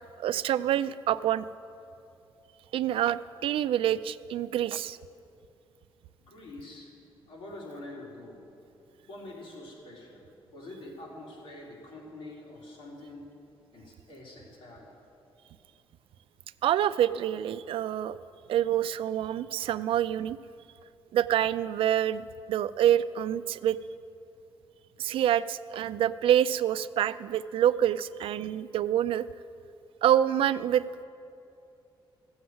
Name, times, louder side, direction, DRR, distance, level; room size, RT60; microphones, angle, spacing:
voice 1, 0.2-1.4 2.7-5.0 16.6-18.2 18.5-20.4 21.1-23.8 25.0-29.2 30.0-31.0, right 11 dB, 80° right, 14 dB, 0.4 m, -26 dB
voice 2, 6.3-6.9 7.3-8.4 9.1-10.2 10.5-13.3 13.7-14.9, left 1 dB, 75° left, -3 dB, 3.4 m, -45 dB
15.0 x 7.9 x 7.9 m, 2.7 s
wide cardioid pair, 175°, 9 cm